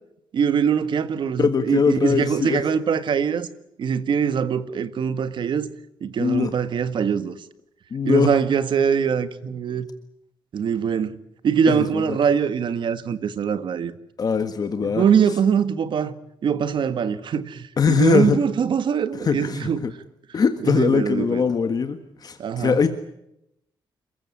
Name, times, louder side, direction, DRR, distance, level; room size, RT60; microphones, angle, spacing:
voice 1, 0.3-3.5 3.8-5.7 6.0-7.4 8.0-9.9 10.5-11.1 11.4-13.9 14.8-16.1 16.4-19.8 20.6-21.4 22.4-22.8, right 7 dB, 65° right, 1.7 m, -22 dB
voice 2, 1.4-2.6 6.2-6.5 7.9-8.3 11.7-12.2 14.2-15.0 17.8-18.4 19.2-19.9 20.3-22.9, left 6 dB, 45° left, 1.7 m, -21 dB
28.0 x 15.5 x 9.8 m
cardioid pair, 120°, 9 cm